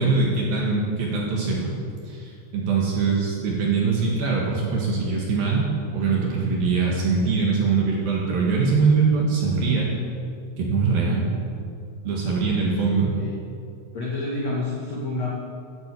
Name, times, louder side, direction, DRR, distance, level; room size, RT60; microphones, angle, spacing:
voice 1, 0.0-1.7 2.1-5.7 5.9-9.9 10.6-11.3 12.0-13.1, right 4 dB, 60° right, -3 dB, 2.8 m, -22 dB
voice 2, 12.4-13.4 13.9-15.3, left 2 dB, 70° left, -4 dB, 1.6 m, -30 dB
11.5 x 8.2 x 8.3 m, 2.3 s
omnidirectional pair, 5.8 m